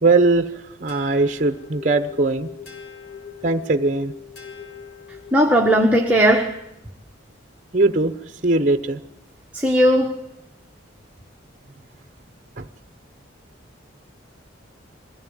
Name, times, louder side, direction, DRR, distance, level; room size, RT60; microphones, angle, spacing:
voice 1, 0.0-2.5 3.4-4.1 7.7-8.1 8.4-9.0 12.6-12.7, right 3 dB, 40° right, 9 dB, 0.8 m, -20 dB
sound 1, 0.9-5.7, left 7 dB, 55° left, 5.0 m, -41 dB
voice 2, 5.1-6.6 9.5-10.2, equal, 5° right, 0 dB, 1.4 m, -17 dB
21.5 x 16.0 x 8.8 m, 0.86 s
head